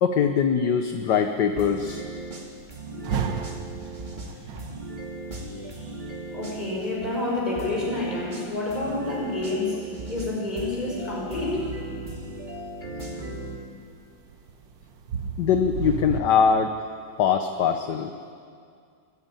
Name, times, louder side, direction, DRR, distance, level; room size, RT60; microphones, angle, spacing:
voice 1, 0.0-2.0 15.4-16.7 17.2-18.1, left 7 dB, 65° left, 7 dB, 1.4 m, -22 dB
sound 1, 0.9-16.2, right 6 dB, 70° right, 1.8 m, -36 dB
sound 2, 1.6-6.9 7.6-13.6, right 2 dB, 25° right, 2.4 m, -37 dB
voice 2, 5.4-6.0 6.3-9.8 10.1-11.6, left 2 dB, 20° left, -3 dB, 6.1 m, -29 dB
23.5 x 14.5 x 9.1 m, 2.3 s
omnidirectional pair, 2.2 m